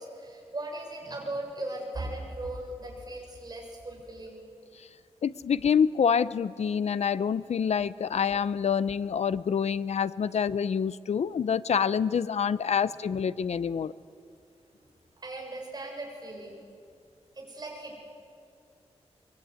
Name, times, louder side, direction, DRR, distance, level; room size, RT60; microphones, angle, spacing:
voice 1, 0.0-4.4 15.2-16.6 17.3-18.0, right 2 dB, 35° right, -1 dB, 6.9 m, -38 dB
voice 2, 5.2-13.9, left 7 dB, 75° left, 17 dB, 0.7 m, -27 dB
23.5 x 23.0 x 9.3 m, 2.3 s
wide cardioid pair, 135°, 11 cm